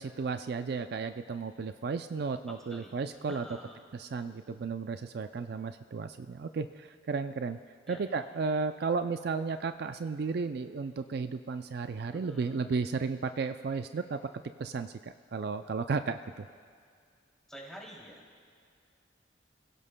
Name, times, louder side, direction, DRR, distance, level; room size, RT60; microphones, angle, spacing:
voice 1, 0.0-3.5 3.9-7.6 7.9-14.2 14.6-16.5, right 4 dB, 55° right, 9 dB, 0.4 m, -34 dB
voice 2, 2.5-2.9 3.3-3.8 7.8-8.0 12.1-12.6 17.5-18.2, equal, 5° left, -3 dB, 2.8 m, -47 dB
28.5 x 16.5 x 2.2 m, 2.2 s
head